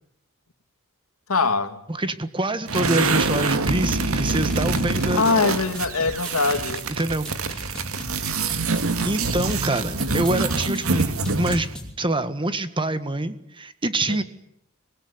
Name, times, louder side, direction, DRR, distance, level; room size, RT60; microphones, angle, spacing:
voice 1, 1.3-1.8 5.2-6.8 14.1-14.2, left 4 dB, 90° left, 2.2 m, -22 dB
voice 2, 1.9-5.4 6.9-7.3 9.0-11.7 12.0-14.2, right 1 dB, 25° right, 1.7 m, -25 dB
sound 1, 2.7-11.7, right 3 dB, 75° right, 2.0 m, -25 dB
sound 2, 4.0-12.0, left 1 dB, 5° left, 5.1 m, -38 dB
25.0 x 21.0 x 9.8 m
head